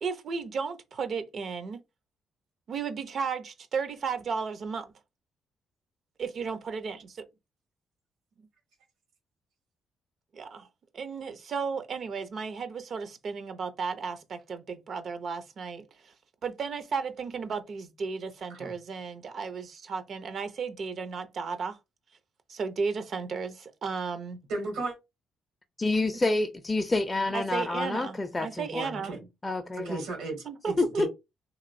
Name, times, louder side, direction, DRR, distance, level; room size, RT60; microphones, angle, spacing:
voice 1, 0.0-1.8 2.7-4.9 6.2-7.2 10.3-10.7 10.9-16.1 16.4-21.8 22.5-24.4 27.3-29.2 30.5-30.7, right 5 dB, 55° right, 0.5 m, -34 dB
voice 2, 24.5-25.0 28.8-29.2 29.8-31.1, right 2 dB, 90° right, 1.3 m, -35 dB
voice 3, 25.8-29.0 29.4-30.0 30.8-31.1, left 2 dB, 20° left, 0.4 m, -28 dB
2.9 x 2.6 x 2.5 m
cardioid pair, 90°, 0 cm